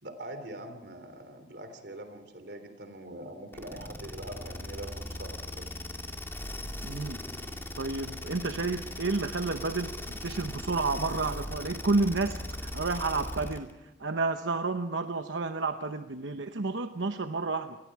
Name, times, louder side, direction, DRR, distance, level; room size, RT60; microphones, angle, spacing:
voice 1, 0.0-5.7, right 1 dB, 65° right, 8 dB, 3.3 m, -43 dB
sound 1, 3.5-13.7, left 1 dB, 15° left, 2.3 m, -39 dB
voice 2, 6.8-7.2 7.8-13.7 14.0-17.8, right 3 dB, 90° right, 7 dB, 0.9 m, -30 dB
28.5 x 20.5 x 4.8 m, 0.95 s
head